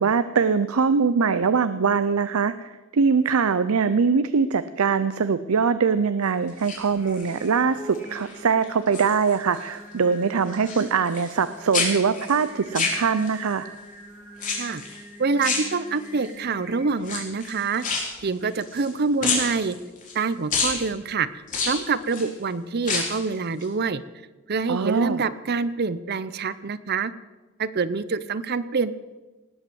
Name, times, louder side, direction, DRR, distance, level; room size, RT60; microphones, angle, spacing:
voice 1, 0.0-13.7 24.7-25.2, right 5 dB, 85° right, 13 dB, 0.6 m, -22 dB
sound 1, 6.5-7.5 7.9-8.3 8.6-9.7 9.9-11.5 11.7-13.5 14.4-15.0 15.4-16.3 17.0-18.9 19.2-20.2 20.5-20.8 21.5-22.3 22.8-23.3 23.6-23.7, left 4 dB, 40° left, 4.0 m, -29 dB
Singing, 6.8-16.8, right 1 dB, 10° right, 4.8 m, -44 dB
voice 2, 15.2-17.8 18.2-19.8 20.1-21.3 21.7-24.0 24.5-27.1 27.6-28.9, right 4 dB, 50° right, 16 dB, 0.6 m, -26 dB
19.0 x 8.2 x 7.8 m, 1.2 s
head